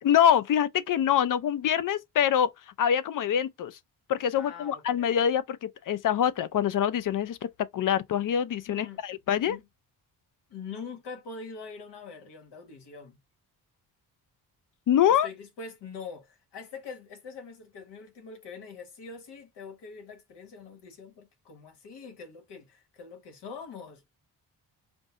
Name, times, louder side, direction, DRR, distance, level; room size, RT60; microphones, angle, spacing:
voice 1, 0.0-2.5 2.8-3.8 4.1-7.4 7.7-9.6 14.9-15.3, left 9 dB, 55° left, 0.5 m, -25 dB
voice 2, 4.3-5.2 8.7-9.0 9.4-9.6 10.5-13.2 15.1-24.0, left 5 dB, 80° left, 1.4 m, -43 dB
5.2 x 2.0 x 2.5 m
cardioid pair, 80°, 40 cm